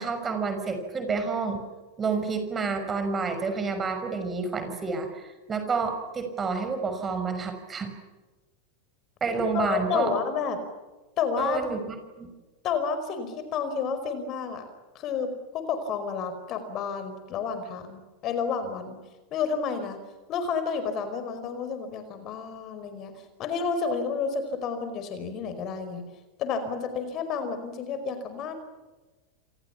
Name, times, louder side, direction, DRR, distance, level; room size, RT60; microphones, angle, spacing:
voice 1, 0.0-1.6 2.0-7.9 9.2-10.1 11.4-12.3, right 4 dB, 20° right, 7 dB, 5.8 m, -29 dB
voice 2, 9.5-10.6 11.2-11.6 12.6-14.6 14.9-19.0 19.3-20.0 20.3-23.1 23.4-26.0 26.4-28.5, left 6 dB, 40° left, 9 dB, 5.0 m, -30 dB
28.5 x 28.0 x 5.9 m, 1.2 s
figure-of-eight pair, 85°, 0 cm